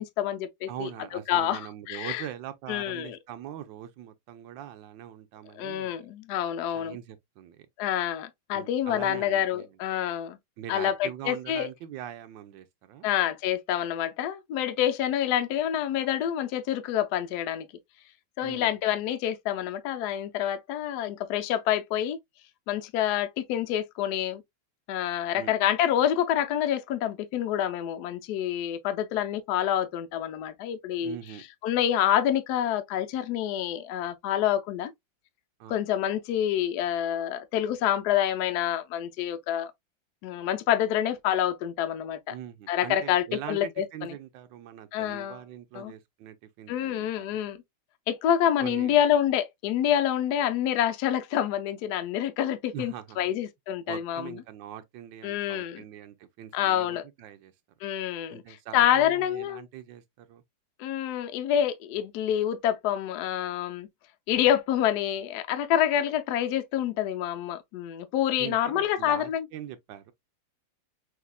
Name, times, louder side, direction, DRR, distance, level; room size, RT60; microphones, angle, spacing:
voice 1, 0.0-1.6 1.9-2.2 2.7-3.2 5.5-7.0 7.8-10.4 10.7-11.7 13.0-17.7 18.4-22.2 22.7-24.4 24.9-31.2 31.6-34.9 35.7-39.7 40.2-42.4 42.7-44.1 44.9-45.4 45.7-45.9 46.7-47.6 48.1-54.4 55.2-55.8 56.5-57.0 57.8-59.6 60.8-63.9 64.3-69.5, left 10 dB, 65° left, 1.1 m, -27 dB
voice 2, 0.7-6.1 6.7-7.7 8.5-9.8 10.6-13.1 18.4-19.0 25.3-25.6 31.0-31.4 35.6-35.8 42.3-47.4 48.6-49.0 52.7-53.3 53.8-57.5 58.3-60.4 68.4-70.1, right 11 dB, 75° right, 1.4 m, -42 dB
6.2 x 2.8 x 2.3 m
omnidirectional pair, 2.1 m